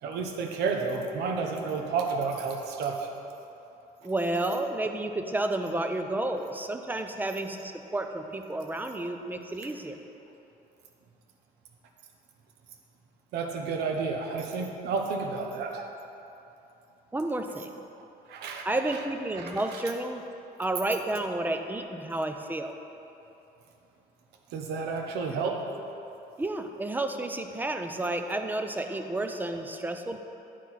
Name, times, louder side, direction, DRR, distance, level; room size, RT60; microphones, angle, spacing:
voice 1, 0.0-3.1 13.3-15.9 18.3-19.0 19.3-19.8 24.5-25.6, right 4 dB, 75° right, 3 dB, 0.9 m, -31 dB
voice 2, 4.0-10.0 17.1-17.7 18.7-20.2 20.6-22.8 26.4-30.2, right 2 dB, 10° right, 6 dB, 0.4 m, -31 dB
9.4 x 4.4 x 4.2 m, 2.9 s
cardioid pair, 110°, 17 cm